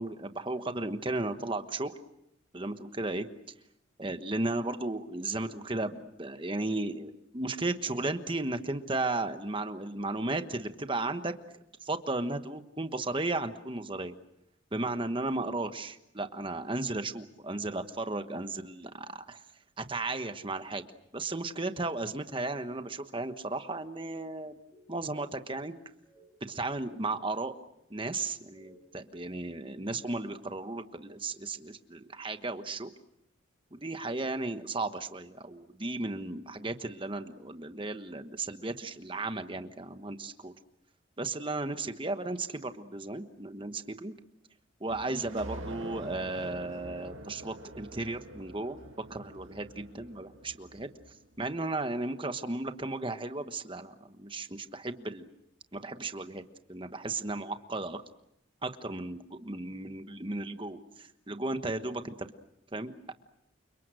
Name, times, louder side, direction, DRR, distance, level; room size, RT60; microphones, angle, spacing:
voice 1, 0.0-1.9 2.5-3.3 4.0-11.3 11.8-14.1 14.7-19.4 19.8-20.8 21.1-24.6 24.9-25.7 26.4-27.5 27.9-32.9 33.7-40.5 41.2-44.1 44.8-50.9 51.4-55.3 55.7-56.4 56.7-58.0 58.6-62.3 62.7-63.1, right 2 dB, 25° right, 9 dB, 1.2 m, -35 dB
sound 1, 24.7-25.5 26.0-26.4 26.9-27.4 28.2-28.9, right 1 dB, 10° left, 5.4 m, -61 dB
sound 2, 44.9-51.2, right 2 dB, 80° right, 2.3 m, -45 dB
29.5 x 26.0 x 6.3 m, 0.82 s
head